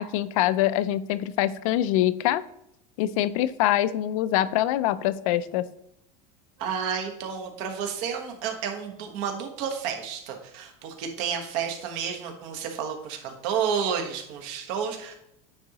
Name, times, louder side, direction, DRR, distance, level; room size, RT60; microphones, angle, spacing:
voice 1, 0.0-2.4 3.0-5.6, left 13 dB, 80° left, 16 dB, 0.4 m, -24 dB
voice 2, 6.6-15.1, right 7 dB, 65° right, 4 dB, 1.3 m, -31 dB
9.3 x 3.7 x 3.0 m, 0.80 s
supercardioid pair, 145°, 17 cm